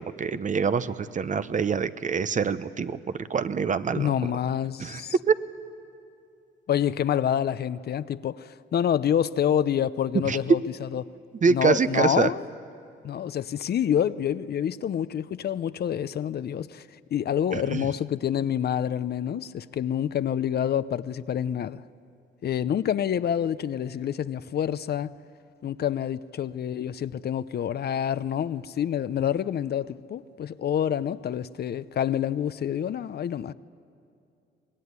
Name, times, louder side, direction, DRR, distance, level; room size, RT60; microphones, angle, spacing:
voice 1, 0.0-3.0 3.3-4.1 4.8-5.0 5.3-5.4 10.3-10.4 11.4-12.3 17.5-17.9, right 5 dB, 40° right, 0.9 m, -25 dB
voice 2, 4.0-5.1 6.7-11.1 11.5-12.4 13.0-21.8 22.4-25.1 25.6-33.5, left 9 dB, 55° left, 0.7 m, -27 dB
24.5 x 20.0 x 9.6 m
cardioid pair, 90°, 20 cm